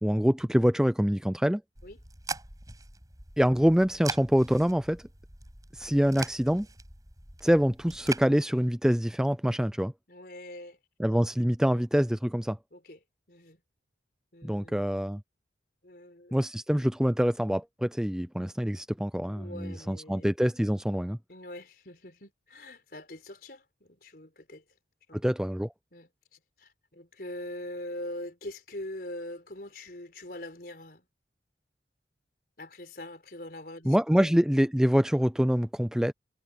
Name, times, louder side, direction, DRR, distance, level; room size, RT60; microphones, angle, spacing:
voice 1, 0.0-1.6 3.4-5.0 5.7-6.7 7.4-9.9 11.0-12.6 14.4-15.2 16.3-21.2 25.1-25.7 33.8-36.1, equal, 5° right, 0.4 m, -25 dB
sound 1, 1.7-8.2, right 3 dB, 20° right, 6.2 m, -41 dB
voice 2, 10.1-10.8 11.6-11.8 12.7-13.0 13.3-13.6 14.3-14.8 15.8-16.4 19.4-20.3 21.3-24.6 25.1-25.2 25.9-26.1 26.6-31.0 32.6-34.3, left 1 dB, 55° left, 4.4 m, -43 dB
head